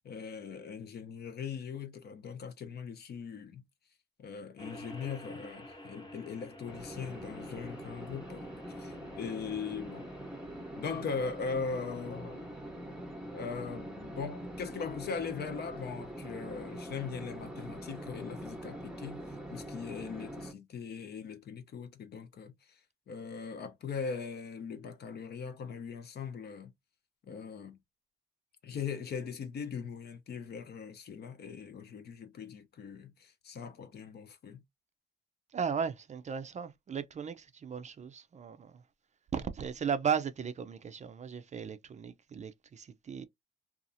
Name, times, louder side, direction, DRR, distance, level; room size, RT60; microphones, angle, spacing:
voice 1, 0.0-3.6 4.2-10.1 10.8-12.4 13.3-22.8 23.1-26.7 27.2-27.8 28.6-34.6, left 6 dB, 55° left, 0.7 m, -40 dB
sound 1, 4.6-19.9, left 1 dB, 20° left, 0.9 m, -53 dB
sound 2, 6.7-20.5, right 1 dB, 5° right, 0.7 m, -44 dB
voice 2, 35.5-38.8 39.3-43.2, right 7 dB, 35° right, 0.4 m, -36 dB
2.6 x 2.4 x 2.6 m
cardioid pair, 90°, 20 cm